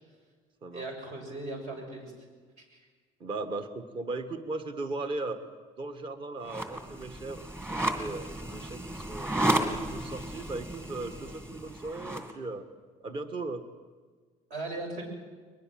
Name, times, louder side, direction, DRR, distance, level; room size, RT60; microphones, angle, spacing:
voice 1, 0.7-2.1 2.7-2.9 14.5-15.0, right 2 dB, 65° right, 2 dB, 6.8 m, -38 dB
voice 2, 3.2-5.4 5.8-7.4 7.7-9.3 9.9-12.7 13.0-13.7, right 3 dB, 35° right, 8 dB, 1.6 m, -37 dB
sound 1, 6.4-12.3, right 1 dB, 20° right, 2.5 m, -33 dB
23.0 x 20.5 x 7.7 m, 1.5 s
cardioid pair, 140°, 14 cm